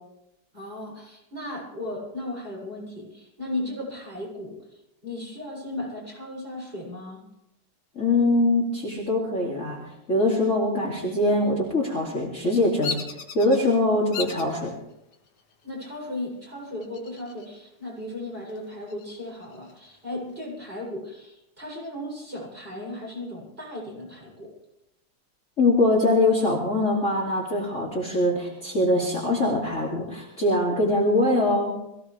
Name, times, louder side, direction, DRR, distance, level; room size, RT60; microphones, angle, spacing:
voice 1, 0.5-4.6 5.0-7.2 15.6-24.5, left 1 dB, 25° right, -4 dB, 7.6 m, -36 dB
voice 2, 8.0-13.0 13.3-14.7 25.6-31.8, left 2 dB, 35° left, -2 dB, 2.9 m, -23 dB
Bird vocalization bird call bird song, 12.8-13.6 14.1-14.5 15.1-15.6 16.8-17.6 17.9-18.0 18.5-19.9, left 5 dB, 75° left, 2.5 m, -35 dB
23.0 x 16.5 x 3.4 m, 0.83 s
omnidirectional pair, 2.4 m